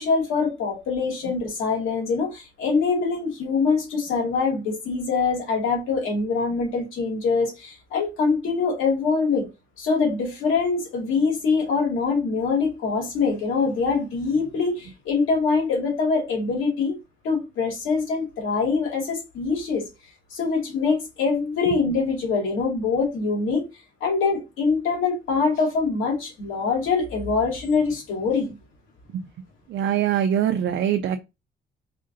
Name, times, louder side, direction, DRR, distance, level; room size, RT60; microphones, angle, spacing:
voice 1, 0.0-9.5 9.8-17.0 17.2-19.9 20.3-23.6 24.0-28.5, left 4 dB, 90° left, 2.3 m, -24 dB
voice 2, 29.7-31.2, right 10 dB, 65° right, 0.5 m, -23 dB
4.3 x 3.7 x 2.6 m
cardioid pair, 90°, 20 cm